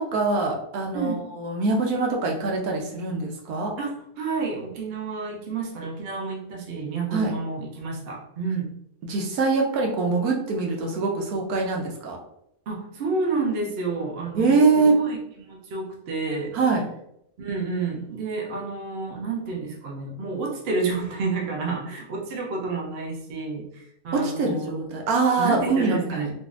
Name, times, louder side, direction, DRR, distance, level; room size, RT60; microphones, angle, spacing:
voice 1, 0.0-3.7 7.1-7.4 9.0-12.2 14.3-15.0 16.5-16.8 24.1-26.3, right 3 dB, 75° right, 1 dB, 1.1 m, -23 dB
voice 2, 0.9-1.3 3.8-8.7 12.7-16.6 17.4-24.9 25.4-26.3, right 4 dB, 55° right, -1 dB, 0.8 m, -30 dB
3.8 x 2.5 x 2.4 m, 0.77 s
omnidirectional pair, 1.6 m